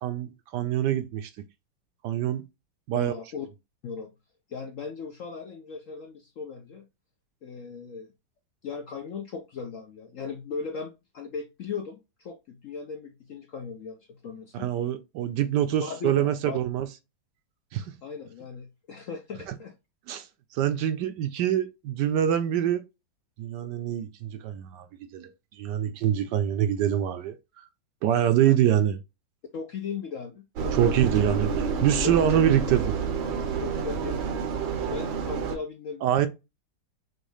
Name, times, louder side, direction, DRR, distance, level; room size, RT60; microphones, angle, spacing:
voice 1, 0.0-1.3 2.0-2.4 2.9-3.1 14.5-16.9 17.7-17.9 19.5-19.6 20.1-20.3 20.5-22.8 23.4-25.3 25.6-27.4 28.0-29.0 30.7-32.9 34.8-34.9 36.0-36.3, right 10 dB, 75° right, 1.1 m, -25 dB
voice 2, 2.9-3.5 3.8-4.1 4.5-6.9 7.4-8.1 8.6-14.7 15.8-16.6 18.0-19.7 28.5-28.6 29.5-30.9 32.0-32.4 33.6-34.3 34.9-36.3, left 5 dB, 65° left, 0.8 m, -37 dB
Engine, 30.6-35.6, right 5 dB, 90° right, 1.6 m, -29 dB
6.2 x 2.4 x 3.3 m
omnidirectional pair, 2.0 m